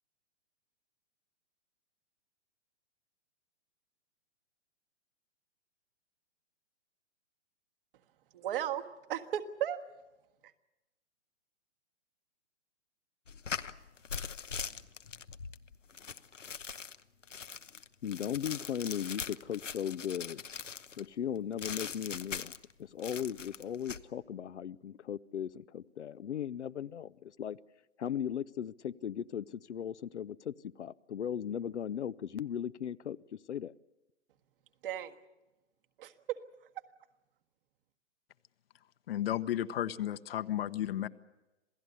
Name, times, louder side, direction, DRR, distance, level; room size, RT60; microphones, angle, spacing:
voice 1, 8.3-8.8 9.1-9.8 10.4-10.5 34.8-35.1 36.0-36.4, right 11 dB, 50° right, 7 dB, 1.6 m, -35 dB
sound 1, 13.3-21.1 21.6-22.7 23.0-24.0, left 6 dB, 85° left, 1.1 m, -41 dB
voice 2, 18.0-20.4 21.0-27.6 28.0-33.7, left 9 dB, 70° left, 16 dB, 0.7 m, -37 dB
voice 3, 39.1-41.1, left 12 dB, 55° left, 12 dB, 1.1 m, -33 dB
27.5 x 17.5 x 8.2 m, 1.0 s
figure-of-eight pair, 125°, 36 cm